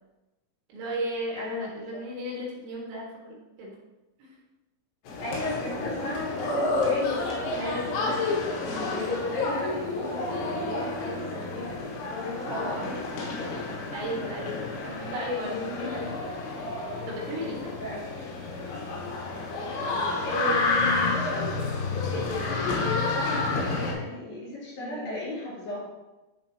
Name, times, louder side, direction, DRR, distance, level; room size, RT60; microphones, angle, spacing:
voice 1, 0.7-3.7 4.2-4.3 7.6-8.1 12.5-13.0 13.9-16.0 17.1-17.7 22.3-22.7 24.8-25.2, equal, 80° right, -4 dB, 4.0 m, -35 dB
voice 2, 1.4-2.0 5.2-8.2 8.6-13.0 14.3-14.9 15.4-16.3 16.9-18.3 18.5-18.6 20.2-21.6 21.9-25.9, left 2 dB, 65° left, -9 dB, 4.9 m, -35 dB
sound 1, 5.1-23.9, left 3 dB, 85° left, 3.8 m, -30 dB
11.0 x 5.0 x 2.9 m, 1.1 s
omnidirectional pair, 5.3 m